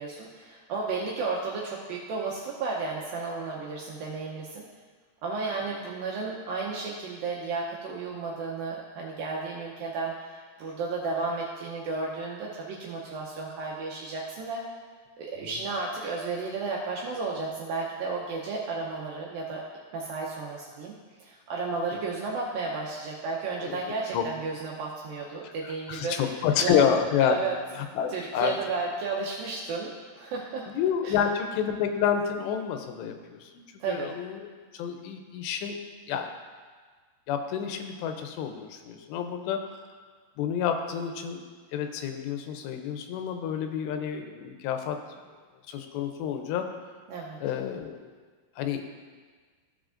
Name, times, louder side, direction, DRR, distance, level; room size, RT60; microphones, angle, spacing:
voice 1, 0.0-4.6 5.2-14.6 15.2-19.6 19.9-20.9 21.2-27.6 28.1-30.7 31.0-31.2 33.8-34.1 47.1-47.4, right 4 dB, 80° right, -3 dB, 2.1 m, -33 dB
voice 2, 25.4-27.4 27.8-28.5 30.7-34.4 34.7-35.8 36.1-36.3 37.3-39.6 40.4-41.4 41.7-45.0 45.7-46.7 47.4-48.1 48.6-48.8, left 8 dB, 85° left, 6 dB, 2.8 m, -29 dB
15.5 x 5.8 x 2.5 m, 1.5 s
omnidirectional pair, 4.9 m